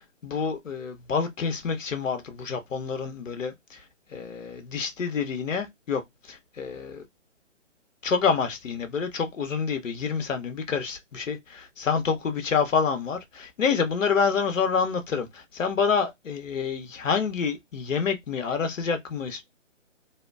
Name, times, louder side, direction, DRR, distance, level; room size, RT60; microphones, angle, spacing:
voice 1, 0.2-3.8 4.1-7.0 8.0-19.4, left 6 dB, 85° left, 0.7 m, -27 dB
2.7 x 2.1 x 2.2 m
figure-of-eight pair, 145°, 38 cm